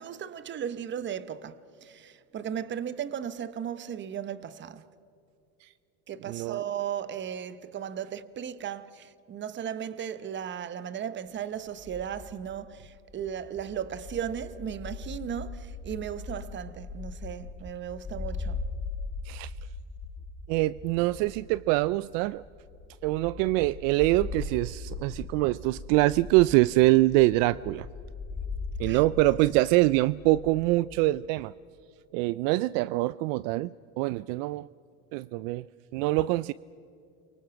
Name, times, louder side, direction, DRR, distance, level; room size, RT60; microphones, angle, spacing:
voice 1, 0.0-4.8 6.1-18.6 28.8-29.0, right 9 dB, 25° right, 0.9 m, -36 dB
voice 2, 6.3-6.6 19.3-19.5 20.5-22.4 23.0-27.9 28.8-31.5 32.1-34.7 35.1-35.6 35.9-36.5, right 19 dB, 60° right, 0.5 m, -24 dB
sound 1, 11.6-30.7, left 3 dB, 30° left, 5.7 m, -40 dB
29.5 x 24.0 x 5.8 m
supercardioid pair, 125°, 44 cm